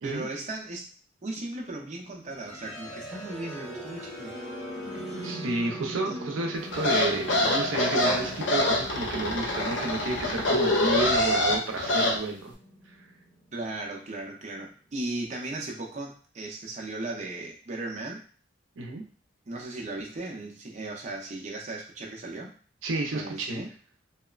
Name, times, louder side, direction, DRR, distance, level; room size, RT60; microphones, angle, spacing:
voice 1, 0.0-0.8 1.2-4.3 6.1-6.4 7.4-7.5 13.5-18.2 19.5-22.5 23.1-23.7, right 2 dB, 35° right, -1 dB, 0.5 m, -36 dB
sound 1, 2.3-14.2, right 1 dB, 5° left, 0.9 m, -42 dB
voice 2, 5.2-12.5 12.9-13.0 18.8-19.0 22.8-23.6, right 2 dB, 85° right, 1 dB, 0.5 m, -31 dB
sound 2, 6.7-12.2, left 1 dB, 65° left, 0.6 m, -25 dB
2.9 x 2.1 x 2.3 m, 0.42 s
head